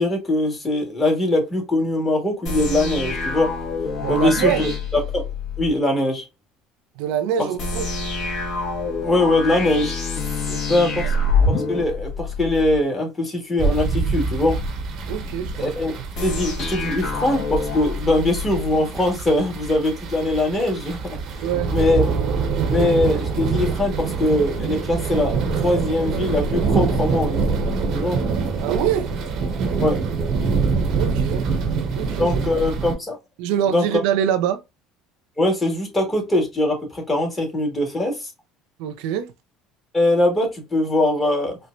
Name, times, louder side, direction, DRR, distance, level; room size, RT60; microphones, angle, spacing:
voice 1, 0.0-3.5 4.1-4.5 4.9-5.3 5.6-6.2 9.0-10.0 10.7-11.1 11.5-14.6 15.6-15.9 16.2-21.2 21.7-22.0 22.7-27.4 27.9-28.2 29.8-30.0 32.2-33.2 33.7-34.0 35.4-38.3 39.9-41.6, left 2 dB, 20° left, 1.5 m, -21 dB
sound 1, 2.4-5.7 7.6-12.8 16.1-18.8, left 3 dB, 55° left, 1.7 m, -26 dB
voice 2, 4.0-4.7 7.0-7.9 10.5-10.8 15.1-15.7 21.4-21.8 28.6-29.1 30.9-31.5 31.9-32.6 33.4-34.6 38.8-39.3, right 9 dB, 75° right, 0.4 m, -24 dB
sound 2, 13.6-32.9, right 4 dB, 55° right, 0.9 m, -25 dB
4.3 x 2.1 x 2.5 m
supercardioid pair, 100°, 0 cm